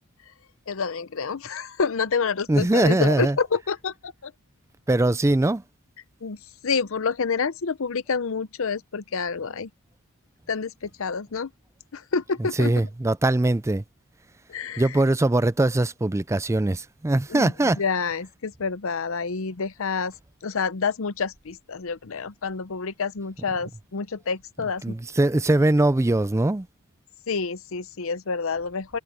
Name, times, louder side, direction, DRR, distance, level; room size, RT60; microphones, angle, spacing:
voice 1, 0.7-4.3 6.2-6.4 6.6-9.7 10.5-11.5 11.9-12.7 14.5-15.0 17.3-20.1 20.4-24.8 27.3-29.0, left 5 dB, 65° left, 0.7 m, -28 dB
voice 2, 2.5-3.4 4.9-5.6 12.6-13.8 14.8-17.8 24.8-26.7, right 2 dB, 15° right, 0.4 m, -21 dB
head